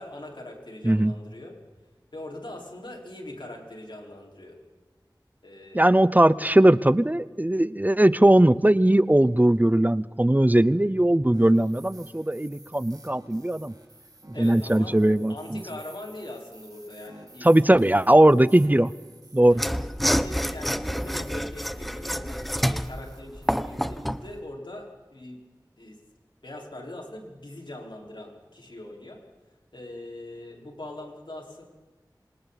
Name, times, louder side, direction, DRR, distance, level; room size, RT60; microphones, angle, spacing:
voice 1, 0.0-1.6 2.1-4.6 5.4-5.9 14.3-15.0 15.3-17.8 19.4-19.7 20.0-25.4 25.8-26.0 26.4-29.2 29.7-31.6, left 1 dB, 85° left, 0 dB, 4.5 m, -41 dB
voice 2, 5.7-13.7 14.4-15.6 17.4-18.9 19.3-19.6, right 1 dB, 20° right, 17 dB, 0.6 m, -19 dB
sound 1, 11.3-24.4, right 1 dB, 55° right, 6.2 m, -51 dB
Mechanisms / Sawing, 19.5-24.3, equal, ahead, 0.9 m, -28 dB
27.5 x 26.0 x 4.1 m, 1.2 s
wide cardioid pair, 45°, 8 cm